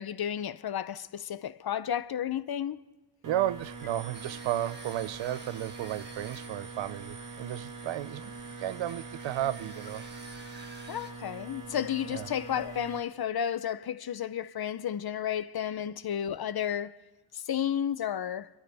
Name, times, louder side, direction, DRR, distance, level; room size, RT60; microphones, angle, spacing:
voice 1, 0.0-2.8 10.9-17.0 17.3-18.5, left 9 dB, 55° left, 0.7 m, -32 dB
sound 1, 3.2-13.0, right 3 dB, 45° right, 1.7 m, -43 dB
voice 2, 3.2-8.3 8.6-10.0 12.1-12.3, right 13 dB, 80° right, 0.6 m, -33 dB
sound 2, 4.1-11.1, right 2 dB, 25° right, 1.5 m, -53 dB
27.5 x 12.5 x 3.5 m
cardioid pair, 80°, 45 cm